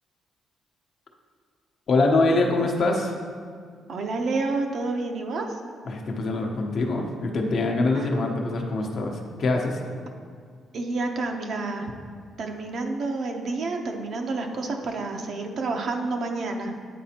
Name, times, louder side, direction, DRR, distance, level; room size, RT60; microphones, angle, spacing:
voice 1, 1.9-3.2 5.9-9.8, left 2 dB, 60° left, 1 dB, 0.8 m, -24 dB
voice 2, 3.9-5.5 7.9-8.1 10.7-11.9 12.4-16.7, right 3 dB, 60° right, 3 dB, 0.7 m, -29 dB
9.2 x 4.1 x 2.8 m, 2.1 s
cardioid pair, 90°, 0 cm